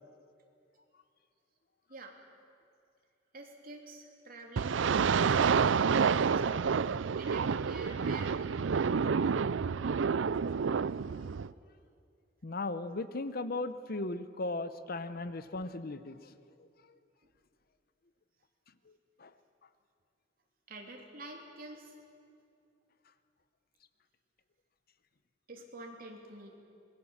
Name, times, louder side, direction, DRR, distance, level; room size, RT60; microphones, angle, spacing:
voice 1, 3.3-6.7 6.9-9.7 20.7-21.9 25.5-26.6, right 2 dB, 50° right, 1 dB, 3.4 m, -49 dB
sound 1, 4.6-11.5, right 6 dB, 85° right, 0.5 m, -29 dB
voice 2, 12.4-17.0 18.8-18.9 19.2-19.3, left 2 dB, 55° left, 12 dB, 0.9 m, -37 dB
25.5 x 21.0 x 7.4 m, 2.4 s
head